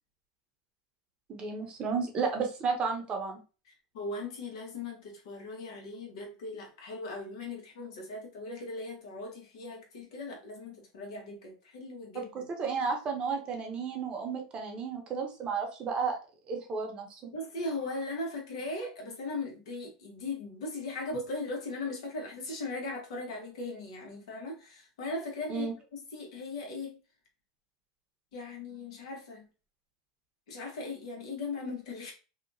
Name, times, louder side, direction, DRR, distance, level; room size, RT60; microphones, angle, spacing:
voice 1, 1.3-3.4 12.6-16.2 16.5-17.2 25.5-25.7, right 5 dB, 30° right, 0.8 m, -32 dB
voice 2, 3.9-12.5 17.3-27.0 28.3-29.4 30.5-32.1, left 2 dB, 75° left, 1.1 m, -38 dB
2.8 x 2.3 x 2.6 m
supercardioid pair, 125°, 3 cm